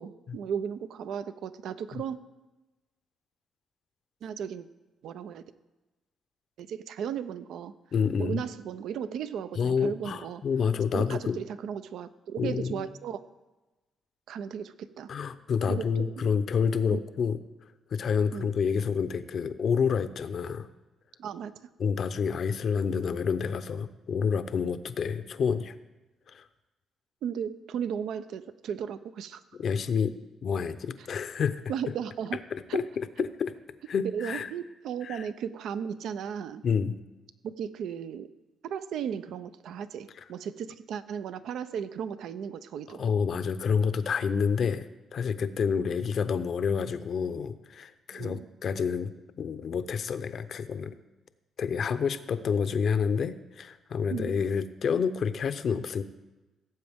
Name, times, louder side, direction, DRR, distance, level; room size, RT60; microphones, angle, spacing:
voice 1, 0.0-2.2 4.2-4.7 5.0-5.4 6.6-7.7 8.2-10.4 10.9-13.2 14.3-15.1 15.7-16.3 16.9-17.0 18.3-18.5 21.2-21.5 27.2-29.4 31.0-31.1 31.7-32.4 32.7-32.8 34.1-36.6 37.4-38.3 38.6-43.0 48.1-48.5 54.1-54.4, right 8 dB, 75° right, 13 dB, 0.5 m, -35 dB
voice 2, 7.9-8.4 9.6-11.4 12.4-12.9 15.1-17.4 17.9-20.7 21.8-25.7 26.3-26.4 29.6-30.1 30.4-31.6 32.5-33.5 33.9-34.5 35.0-35.3 36.6-37.0 42.9-49.1 49.4-51.0 51.6-56.0, left 6 dB, 55° left, 11 dB, 0.6 m, -28 dB
17.0 x 7.8 x 3.6 m, 1.1 s
cardioid pair, 90°, 0 cm